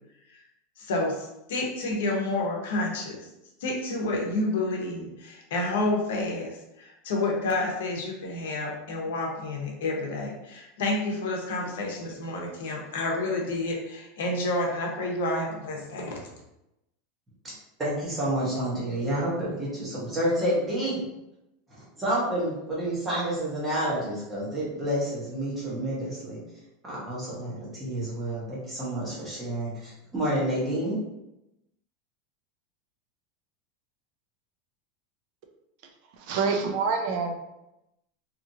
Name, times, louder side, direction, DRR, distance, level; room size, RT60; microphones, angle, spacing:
voice 1, 0.8-3.3 3.6-16.2, left 2 dB, 80° left, 0 dB, 0.8 m, -29 dB
voice 2, 17.8-21.0 21.7-26.4 26.8-31.0, right 1 dB, 10° right, -7 dB, 0.8 m, -29 dB
voice 3, 36.3-37.3, right 5 dB, 45° right, 4 dB, 0.3 m, -26 dB
2.8 x 2.4 x 2.6 m, 0.89 s
supercardioid pair, 180°, 0 cm